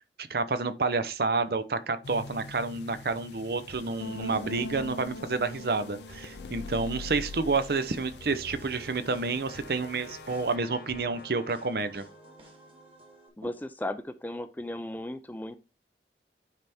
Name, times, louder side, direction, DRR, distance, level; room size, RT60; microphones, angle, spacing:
voice 1, 0.2-12.0, right 3 dB, 60° right, 0.6 m, -29 dB
sound 1, 2.0-10.5, left 3 dB, 80° left, 0.6 m, -42 dB
sound 2, 3.7-13.3, right 1 dB, 30° right, 1.6 m, -52 dB
Brass instrument, 8.2-12.9, left 3 dB, 55° left, 1.0 m, -51 dB
voice 2, 13.4-15.6, left 1 dB, 10° left, 0.4 m, -36 dB
9.6 x 3.5 x 4.3 m
head